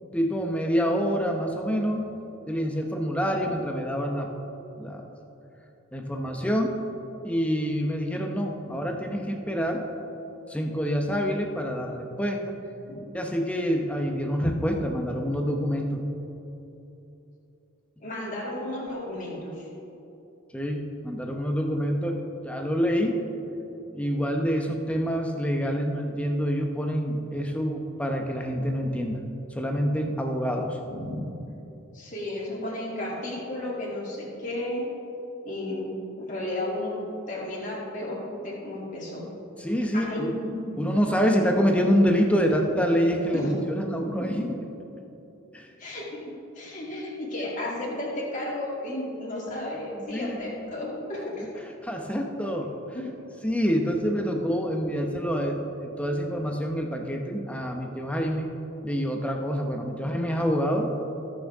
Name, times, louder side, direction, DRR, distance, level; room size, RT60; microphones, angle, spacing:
voice 1, 0.1-2.1 2.5-4.3 4.8-5.0 5.9-6.8 7.2-9.9 10.5-12.6 13.1-16.0 20.5-23.2 23.9-29.2 29.5-30.8 39.6-40.3 40.8-44.5 45.5-45.7 50.1-50.7 51.8-52.7 53.4-58.5 58.8-60.9, equal, 5° left, 2 dB, 0.8 m, -26 dB
voice 2, 18.0-19.7 30.9-31.3 31.9-34.8 35.4-35.8 36.2-37.0 37.3-39.2 39.9-40.8 43.3-43.6 44.4-44.5 45.8-51.5 52.9-53.1 54.7-55.1, left 1 dB, 35° left, -5 dB, 2.6 m, -33 dB
19.0 x 6.5 x 3.6 m, 3.0 s
head